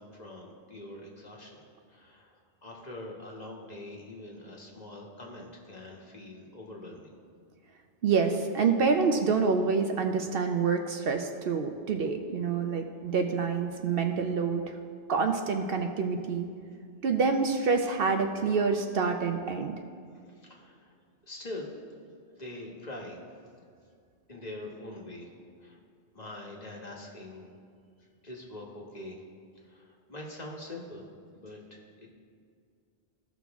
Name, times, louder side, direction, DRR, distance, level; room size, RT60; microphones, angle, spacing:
voice 1, 0.0-2.3 2.6-7.2 20.4-20.9 21.3-21.7 22.3-23.2 24.3-25.3 25.6-25.8 26.1-27.5 28.2-29.2 29.6-31.0 31.3-32.1, left 1 dB, 40° left, -2 dB, 1.3 m, -44 dB
voice 2, 8.0-14.7 15.1-16.5 17.0-19.8, right 5 dB, 65° right, 5 dB, 0.7 m, -27 dB
15.5 x 6.1 x 3.5 m, 2.2 s
omnidirectional pair, 1.1 m